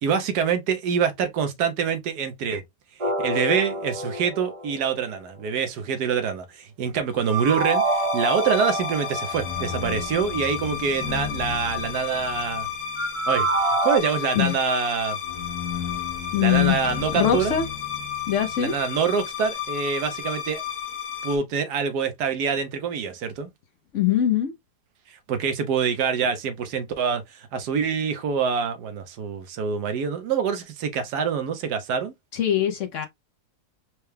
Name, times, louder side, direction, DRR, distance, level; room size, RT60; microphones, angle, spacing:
voice 1, 0.0-2.6 3.0-12.7 13.3-15.2 16.4-17.5 18.6-20.6 21.2-23.5 25.1-32.1, right 6 dB, 85° right, 1.3 m, -25 dB
sound 1, 3.0-5.1 7.3-10.0 12.9-14.0, right 2 dB, 35° right, 0.5 m, -26 dB
sound 2, 7.2-21.4, left 8 dB, 85° left, 1.2 m, -32 dB
voice 2, 16.3-16.8 17.1-17.7 18.3-18.7 23.9-24.5 32.3-33.1, left 10 dB, 60° left, 0.8 m, -22 dB
4.5 x 2.2 x 3.2 m
omnidirectional pair, 1.7 m